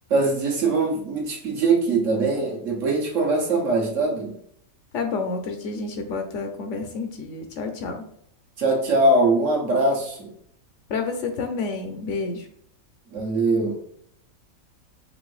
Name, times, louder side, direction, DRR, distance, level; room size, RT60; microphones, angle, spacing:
voice 1, 0.1-4.4 8.6-10.3 13.1-13.8, right 2 dB, 65° right, -1 dB, 1.3 m, -22 dB
voice 2, 4.9-8.0 10.9-12.5, left 4 dB, 65° left, 5 dB, 0.8 m, -29 dB
5.3 x 2.6 x 3.1 m, 0.68 s
omnidirectional pair, 1.5 m